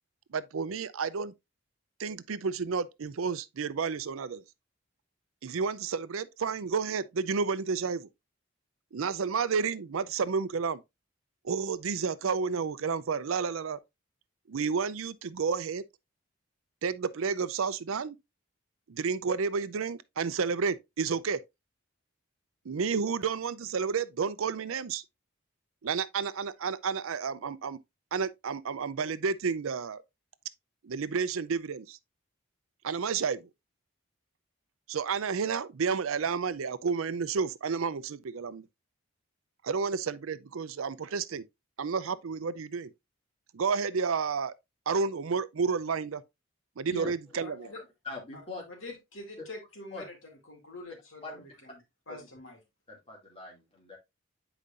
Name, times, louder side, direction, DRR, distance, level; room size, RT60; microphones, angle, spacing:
voice 1, 0.3-1.3 2.0-4.4 5.4-8.1 8.9-10.8 11.4-13.8 14.5-15.8 16.8-18.2 18.9-21.4 22.7-25.0 25.8-27.8 28.1-30.0 30.8-32.0 32.8-33.5 34.9-38.7 39.6-41.4 41.8-42.9 43.5-44.5 44.9-46.2 46.8-47.7, right 5 dB, 80° right, 0.5 m, -31 dB
voice 2, 46.9-47.7 48.0-48.6 49.9-50.0 51.2-51.4 52.1-52.2 52.9-54.0, left 2 dB, 25° left, 2.5 m, -42 dB
voice 3, 47.4-47.8 48.3-48.4 48.7-50.2 50.4-52.6, left 2 dB, 75° left, 2.5 m, -46 dB
8.4 x 4.9 x 2.5 m
head